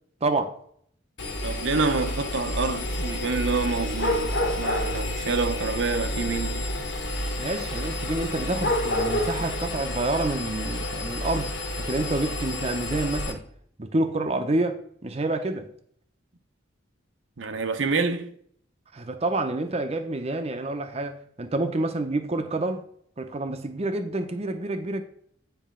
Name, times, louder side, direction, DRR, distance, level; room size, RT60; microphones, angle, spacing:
voice 1, 0.2-0.6 7.4-11.5 11.8-13.4 13.8-15.7 18.9-22.8 23.2-25.0, right 2 dB, 35° right, 0.6 m, -28 dB
Engine, 1.2-13.3, left 1 dB, 80° left, 1.6 m, -31 dB
voice 2, 1.4-6.7 17.4-18.3, right 4 dB, 80° right, 0.8 m, -27 dB
sound 1, 2.8-9.7, left 1 dB, 55° left, 1.1 m, -31 dB
9.3 x 5.0 x 3.7 m
head